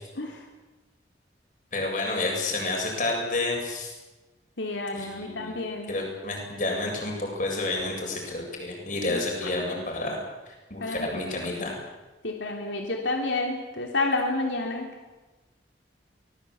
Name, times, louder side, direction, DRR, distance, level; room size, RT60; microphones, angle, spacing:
voice 1, 1.7-3.9 4.9-5.5 5.9-11.7, left 2 dB, 45° left, 0 dB, 7.8 m, -30 dB
voice 2, 4.6-5.9 9.1-9.2 10.8-11.2 12.2-15.1, left 2 dB, 85° left, 1 dB, 3.2 m, -30 dB
24.5 x 20.0 x 8.6 m, 1.1 s
head